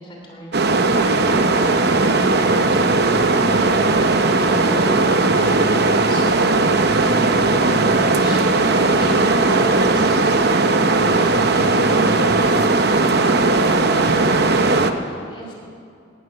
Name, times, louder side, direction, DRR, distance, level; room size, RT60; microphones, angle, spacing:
voice 1, 0.0-6.2 6.9-15.5, left 1 dB, 25° left, -1 dB, 2.9 m, -37 dB
sound 1, 0.5-14.9, right 3 dB, 55° right, 0.8 m, -17 dB
19.0 x 12.0 x 5.8 m, 2.4 s
head